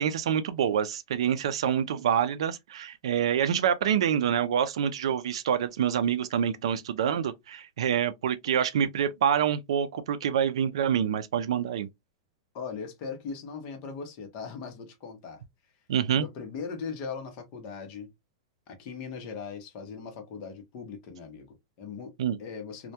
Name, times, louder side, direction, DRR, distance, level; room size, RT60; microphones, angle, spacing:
voice 1, 0.0-11.9 15.9-16.2 22.2-22.4, right 8 dB, 80° right, 0.3 m, -26 dB
voice 2, 12.5-15.4 16.1-18.1 18.7-22.1 22.4-22.9, left 5 dB, 35° left, 0.7 m, -39 dB
2.2 x 2.1 x 2.7 m
supercardioid pair, 165°, 3 cm